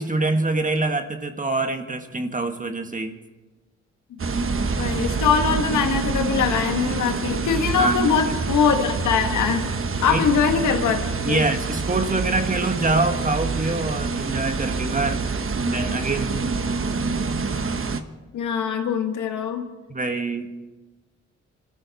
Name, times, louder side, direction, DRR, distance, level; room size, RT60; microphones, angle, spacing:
voice 1, 0.0-3.2 7.8-8.2 10.1-10.2 11.2-15.2 15.6-16.4 19.9-20.5, right 3 dB, 25° right, 6 dB, 1.6 m, -25 dB
sound 1, 4.2-18.0, right 4 dB, 45° right, 1.3 m, -26 dB
voice 2, 4.8-9.7 10.0-11.4 18.3-19.7, left 6 dB, 85° left, 5 dB, 1.7 m, -22 dB
26.0 x 13.5 x 4.2 m, 1.2 s
supercardioid pair, 55°, 29 cm